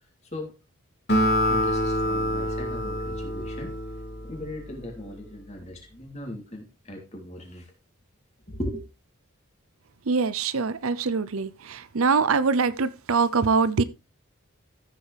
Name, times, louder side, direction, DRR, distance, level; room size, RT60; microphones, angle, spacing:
Acoustic guitar, 1.1-4.7, equal, 50° left, 2.6 m, -26 dB
voice 1, 1.4-3.7 4.2-7.7 8.5-8.8, left 1 dB, 30° left, 3.1 m, -38 dB
voice 2, 10.1-13.8, right 4 dB, 75° right, 0.7 m, -23 dB
14.0 x 7.0 x 3.4 m
head